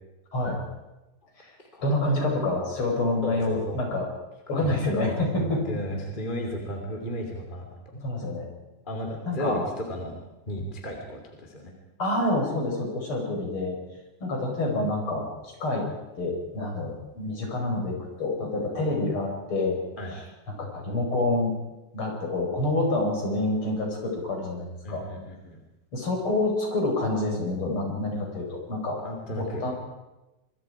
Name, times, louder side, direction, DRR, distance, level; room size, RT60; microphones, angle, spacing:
voice 1, 1.8-4.1 4.5-5.6 8.0-8.5 9.3-9.7 12.0-13.8 14.2-15.9 16.2-19.8 20.5-21.6 21.9-25.0 25.9-29.0 29.3-29.7, left 2 dB, 40° left, 1 dB, 5.6 m, -27 dB
voice 2, 3.2-3.8 4.5-7.7 7.9-8.0 8.8-10.2 10.5-11.7 20.0-20.1 24.8-25.6 29.0-29.7, equal, 15° left, 1 dB, 2.7 m, -34 dB
25.5 x 22.5 x 4.9 m, 1.0 s
omnidirectional pair, 3.8 m